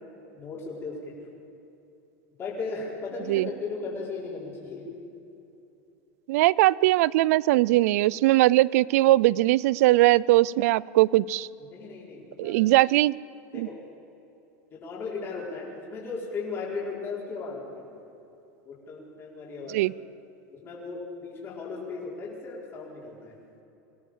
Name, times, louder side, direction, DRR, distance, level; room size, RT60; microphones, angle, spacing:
voice 1, 0.3-1.1 2.4-4.8 11.7-12.6 13.5-13.8 14.7-17.9 18.6-19.8 20.5-23.3, left 4 dB, 30° left, -4 dB, 5.0 m, -36 dB
voice 2, 6.3-11.5 12.4-13.1 13.5-13.7 19.7-19.9, right 17 dB, 75° right, 23 dB, 0.4 m, -20 dB
24.5 x 17.5 x 7.4 m, 2.8 s
supercardioid pair, 145°, 8 cm